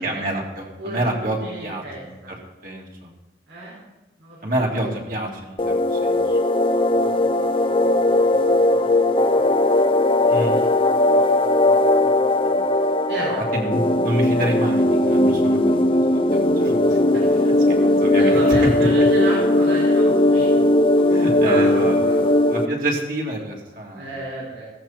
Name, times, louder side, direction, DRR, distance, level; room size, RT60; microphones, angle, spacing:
voice 1, 0.0-2.3 2.6-3.1 4.4-6.4 10.3-10.6 12.4-12.6 13.5-17.0 17.7-18.7 21.1-22.0 22.5-24.1, right 1 dB, 50° right, -2 dB, 3.1 m, -28 dB
voice 2, 0.8-2.3 3.5-3.8 4.2-4.5 6.9-7.1 8.0-8.4 8.7-9.5 10.0-12.2 13.1-13.4 17.1-17.5 18.2-20.6 20.9-22.2 23.9-24.6, right 2 dB, 85° right, -7 dB, 5.2 m, -33 dB
sound 1, 5.6-22.7, left 1 dB, 30° left, 0.7 m, -18 dB
17.0 x 13.5 x 4.4 m, 1.1 s
head